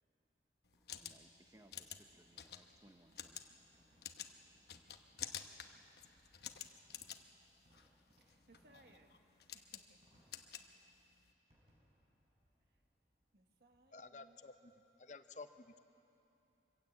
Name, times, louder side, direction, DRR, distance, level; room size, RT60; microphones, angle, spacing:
sound 1, 0.6-11.3, left 9 dB, 65° left, 1.0 m, -51 dB
Fireworks, 0.7-14.2, equal, 35° right, 5.0 m, -74 dB
voice 1, 0.9-3.4, right 1 dB, 20° right, 5 dB, 0.8 m, -65 dB
voice 2, 8.2-9.2 9.5-10.0 12.7-12.8 13.3-14.4, right 2 dB, 60° right, 4 dB, 1.6 m, -67 dB
voice 3, 13.9-14.5 15.0-15.8, left 3 dB, 40° left, 9 dB, 0.8 m, -52 dB
24.5 x 16.0 x 8.3 m, 2.9 s
head